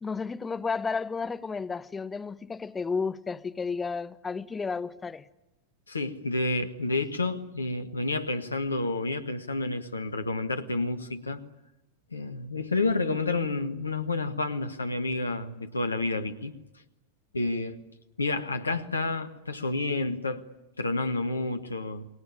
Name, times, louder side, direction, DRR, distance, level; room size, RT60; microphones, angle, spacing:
voice 1, 0.0-5.3, left 5 dB, 15° left, 1.0 m, -32 dB
voice 2, 5.9-11.4 12.1-16.5 17.3-17.8 18.2-20.4 20.8-22.2, left 2 dB, 75° left, 1.6 m, -30 dB
29.0 x 21.5 x 8.7 m
figure-of-eight pair, 90°, 0 cm